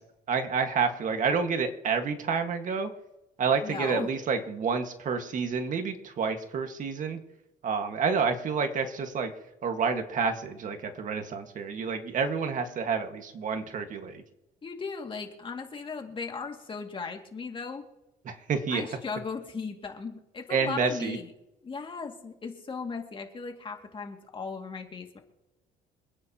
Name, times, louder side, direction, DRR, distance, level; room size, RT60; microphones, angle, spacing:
voice 1, 0.3-2.9 3.4-7.2 7.6-9.3 9.6-14.2 18.3-18.9 20.5-21.2, right 5 dB, 50° right, 6 dB, 1.7 m, -29 dB
voice 2, 3.6-4.1 14.6-17.8 18.7-21.3 21.6-25.2, left 5 dB, 30° left, 3 dB, 2.3 m, -37 dB
26.5 x 9.6 x 2.9 m, 0.96 s
cardioid pair, 110°, 17 cm